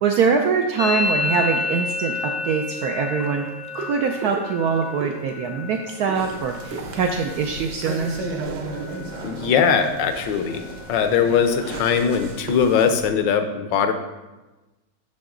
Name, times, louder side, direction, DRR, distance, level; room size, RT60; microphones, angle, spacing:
voice 1, 0.0-3.5 3.7-8.1, right 6 dB, 85° right, 3 dB, 0.8 m, -23 dB
Musical instrument, 0.8-8.4 8.7-9.3 9.5-10.1 10.4-12.4, left 3 dB, 50° left, 0.4 m, -31 dB
sound 1, 1.3-7.4, right 3 dB, 45° right, 0.5 m, -39 dB
sound 2, 6.1-13.1, right 2 dB, 65° right, 1.3 m, -35 dB
voice 2, 9.2-10.6 10.9-13.9, left 7 dB, 70° left, 8 dB, 1.2 m, -20 dB
6.5 x 6.0 x 3.7 m, 1.1 s
omnidirectional pair, 2.2 m